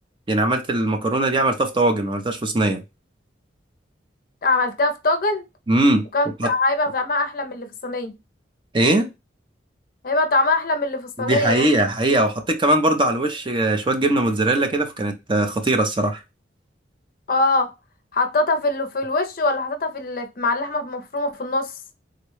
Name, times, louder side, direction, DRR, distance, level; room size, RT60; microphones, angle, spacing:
voice 1, 0.3-2.8 5.7-6.0 6.4-6.5 8.7-9.1 11.2-16.2, right 2 dB, 25° right, 0.5 m, -20 dB
voice 2, 4.4-5.4 6.1-8.1 10.0-11.7 17.3-17.7 18.1-21.8, left 2 dB, 50° left, 0.5 m, -23 dB
3.8 x 2.2 x 3.0 m
head